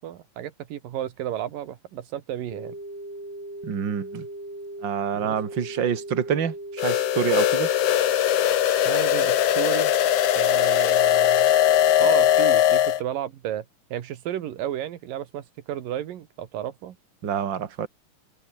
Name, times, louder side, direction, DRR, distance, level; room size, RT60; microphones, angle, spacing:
voice 1, 0.0-2.8 5.1-5.4 8.9-9.9 10.4-11.5 12.0-13.6 13.9-17.0, right 11 dB, 90° right, 3.3 m, -33 dB
sound 1, 2.5-12.5, right 1 dB, 15° right, 6.6 m, -38 dB
voice 2, 3.6-4.3 4.8-7.7 17.2-17.9, right 8 dB, 40° right, 2.5 m, -27 dB
sound 2, 6.8-13.0, left 11 dB, 60° left, 1.8 m, -20 dB
omnidirectional pair, 3.8 m